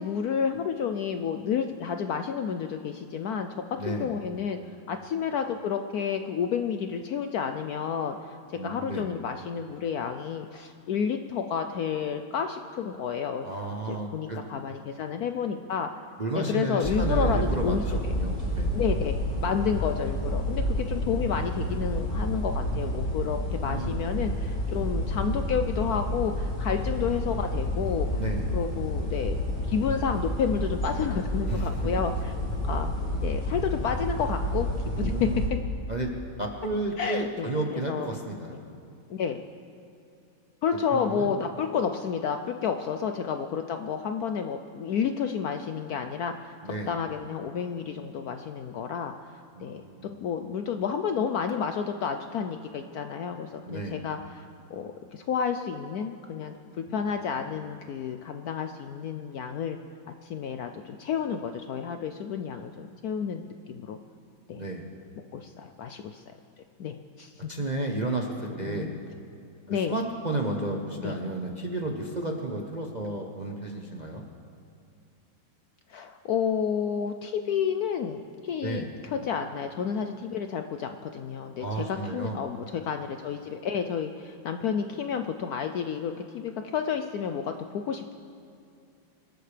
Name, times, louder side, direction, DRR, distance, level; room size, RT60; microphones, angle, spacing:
voice 1, 0.0-4.6 4.9-8.4 8.6-13.5 13.9-15.9 16.3-18.1 18.7-19.2 19.4-28.1 28.5-29.4 29.7-32.3 32.6-34.7 35.0-35.3 37.0-38.1 39.1-39.4 40.6-46.5 46.9-49.1 49.6-49.8 50.2-54.4 54.7-59.8 60.2-64.0 64.5-64.6 65.3-66.2 66.8-67.5 68.6-69.0 69.7-69.9 71.0-71.2 75.9-78.8 79.1-88.1, left 7 dB, 70° left, 7 dB, 0.9 m, -30 dB
voice 2, 3.8-4.1 8.5-9.1 13.4-14.4 16.2-18.7 23.6-24.0 28.2-28.5 31.5-31.7 34.9-35.4 35.9-36.1 36.4-38.6 40.9-41.3 46.6-47.0 49.5-50.0 53.7-54.0 56.9-57.4 64.5-64.8 67.5-68.9 69.7-74.2 78.6-78.9 81.6-82.4, right 2 dB, 35° right, 1 dB, 0.7 m, -32 dB
sound 1, 16.8-35.5, equal, 25° left, 4.3 m, -29 dB
25.5 x 13.0 x 3.3 m, 2.6 s
omnidirectional pair, 2.1 m